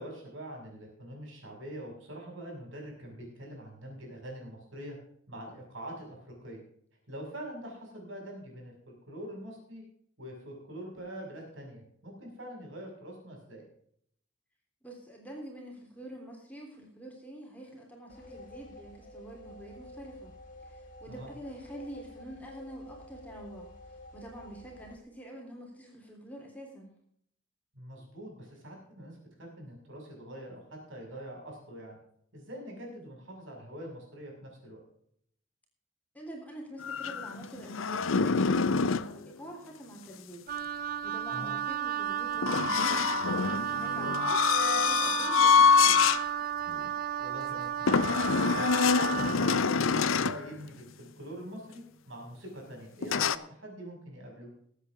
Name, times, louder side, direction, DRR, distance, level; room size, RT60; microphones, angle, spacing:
voice 1, 0.0-5.0 5.3-6.6 7.1-9.8 10.2-13.6 21.1-21.3 27.7-32.0 32.3-34.8 41.3-41.5 44.0-44.2 47.2-48.1 48.4-54.5, right 1 dB, 70° right, 0 dB, 6.3 m, -44 dB
voice 2, 14.8-20.3 20.6-26.9 36.1-40.5 41.0-43.1 43.5-46.1, right 1 dB, 10° left, -1 dB, 3.4 m, -46 dB
sound 1, 18.1-25.0, left 1 dB, 40° left, 2.2 m, -50 dB
sound 2, 36.8-39.1 42.4-46.2 46.7-46.9 47.9-50.4 53.0-53.4, left 5 dB, 85° left, 0.6 m, -25 dB
Wind instrument woodwind instrument, 40.5-49.6, right 9 dB, 45° right, 0.5 m, -33 dB
21.5 x 8.4 x 3.6 m, 0.66 s
head